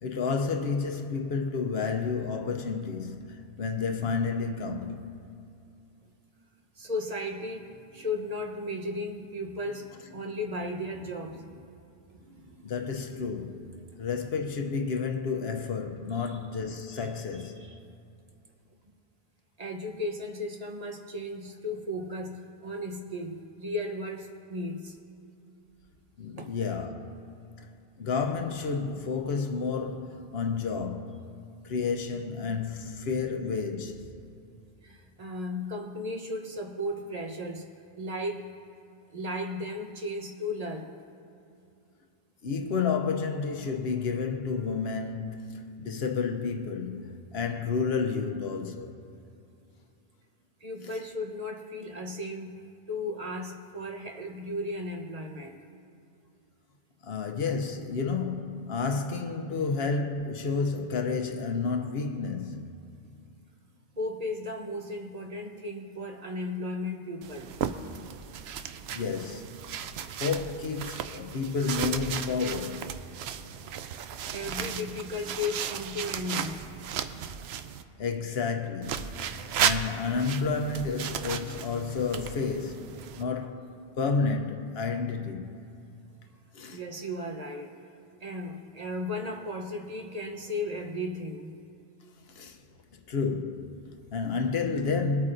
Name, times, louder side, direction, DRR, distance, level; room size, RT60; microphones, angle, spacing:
voice 1, 0.0-5.2 12.6-17.7 26.2-27.7 28.0-31.3 31.6-34.2 42.4-49.0 50.8-50.9 57.0-62.8 68.9-69.6 70.2-73.0 78.0-85.6 86.5-86.8 92.3-92.6 93.1-95.3, left 5 dB, 75° left, 1.0 m, -31 dB
voice 2, 6.8-11.7 12.1-13.3 16.2-16.3 17.0-17.1 17.4-17.8 19.6-25.0 26.4-26.5 34.8-37.7 38.0-38.4 39.1-40.9 50.6-52.6 52.9-55.6 57.2-57.3 57.9-58.0 64.0-67.6 73.4-73.8 74.3-76.7 86.7-87.8 88.2-91.5, left 1 dB, 40° right, 1.0 m, -35 dB
sound 1, 67.2-77.8 78.8-83.2, right 8 dB, 85° right, 0.8 m, -35 dB
23.5 x 8.7 x 2.6 m
omnidirectional pair, 1.0 m